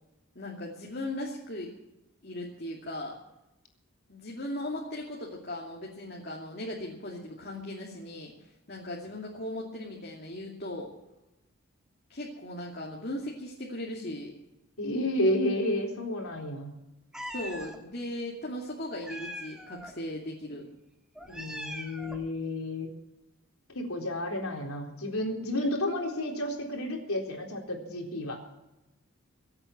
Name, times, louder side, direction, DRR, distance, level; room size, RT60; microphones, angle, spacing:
voice 1, 0.3-1.7 2.2-3.1 4.1-10.9 12.1-14.3 17.3-20.7, left 1 dB, 45° left, -3 dB, 2.6 m, -38 dB
voice 2, 14.8-16.8 21.3-22.9 23.7-28.5, left 1 dB, 90° left, 2 dB, 3.9 m, -31 dB
Meow, 17.1-17.8 19.0-19.9 21.2-22.3, equal, 5° right, 1.6 m, -41 dB
24.5 x 8.8 x 6.0 m, 0.95 s
head